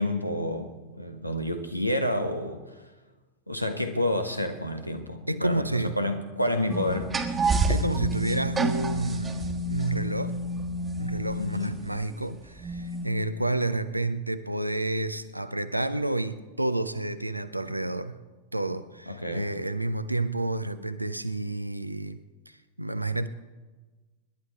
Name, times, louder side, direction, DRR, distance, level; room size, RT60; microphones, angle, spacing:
voice 1, 0.0-2.6 3.5-7.1 11.4-11.8 19.1-19.5, left 1 dB, 90° left, 7 dB, 1.2 m, -29 dB
voice 2, 5.3-5.9 6.6-6.8 7.5-10.4 11.0-18.2 18.5-23.3, right 2 dB, 85° right, 12 dB, 0.6 m, -30 dB
sound 1, 6.7-12.0 12.6-13.1, right 2 dB, 20° right, 1.3 m, -29 dB
25.5 x 11.0 x 3.5 m, 1.2 s
figure-of-eight pair, 90°, 0 cm